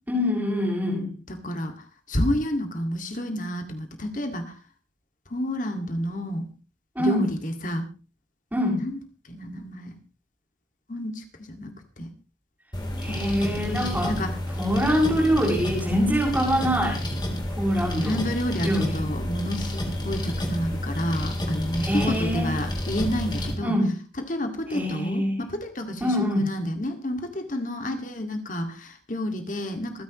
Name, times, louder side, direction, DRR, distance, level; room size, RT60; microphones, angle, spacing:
voice 1, 0.1-1.1 7.0-7.3 8.5-8.8 13.0-14.2 14.6-17.0 17.6-18.2 18.6-19.0 21.8-22.5 23.6-23.9 24.7-25.4 26.0-26.5, equal, 10° right, -5 dB, 6.9 m, -24 dB
voice 2, 1.4-1.7 2.1-4.5 5.3-6.5 7.0-7.8 8.8-8.9 9.3-9.9 10.9-12.1 13.1-14.3 17.9-23.7 24.2-30.0, left 1 dB, 45° left, 5 dB, 2.1 m, -30 dB
sound 1, 12.7-23.5, equal, 25° left, 3.5 m, -30 dB
27.0 x 10.5 x 3.1 m, 0.34 s
head